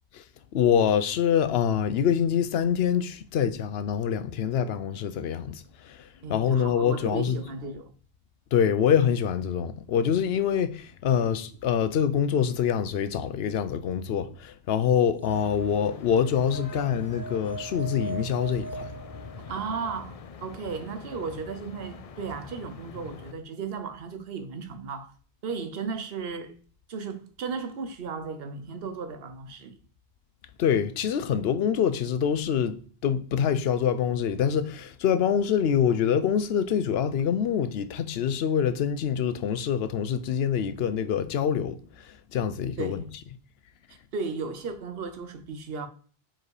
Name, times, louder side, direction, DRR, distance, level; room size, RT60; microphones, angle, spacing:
voice 1, 0.5-7.4 8.5-18.9 30.6-32.8 33.0-43.0, left 8 dB, 80° left, 0.8 m, -25 dB
voice 2, 6.2-7.9 19.5-25.1 25.4-26.6 26.9-29.8 42.8-43.1 44.1-45.9, right 5 dB, 70° right, 1.1 m, -35 dB
sound 1, 15.0-19.8, right 3 dB, 25° right, 0.5 m, -40 dB
sound 2, 15.3-23.3, left 5 dB, 50° left, 0.5 m, -44 dB
4.8 x 4.4 x 4.8 m
omnidirectional pair, 1.0 m